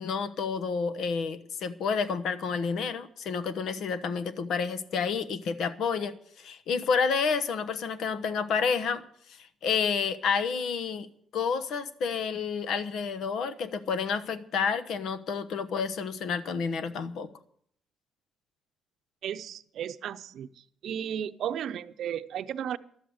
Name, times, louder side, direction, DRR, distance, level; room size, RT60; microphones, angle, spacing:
voice 1, 0.0-9.0 9.4-11.1 11.3-17.3, left 5 dB, 70° left, 13 dB, 1.0 m, -30 dB
voice 2, 19.2-20.5 20.8-22.8, right 9 dB, 70° right, 12 dB, 0.7 m, -34 dB
12.0 x 7.7 x 9.6 m, 0.64 s
cardioid pair, 90°, 0 cm